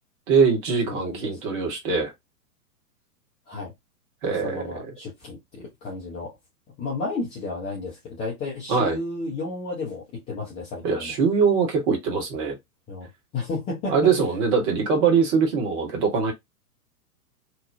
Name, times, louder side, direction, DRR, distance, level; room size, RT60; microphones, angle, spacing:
voice 1, 0.3-2.1 4.2-4.9 8.7-9.0 10.8-12.6 13.9-16.3, right 5 dB, 35° right, 1.1 m, -22 dB
voice 2, 0.9-1.4 3.5-3.7 4.2-6.3 6.8-11.2 12.9-14.0, left 3 dB, 15° left, 0.5 m, -32 dB
3.0 x 2.1 x 2.5 m
figure-of-eight pair, 105°, 48 cm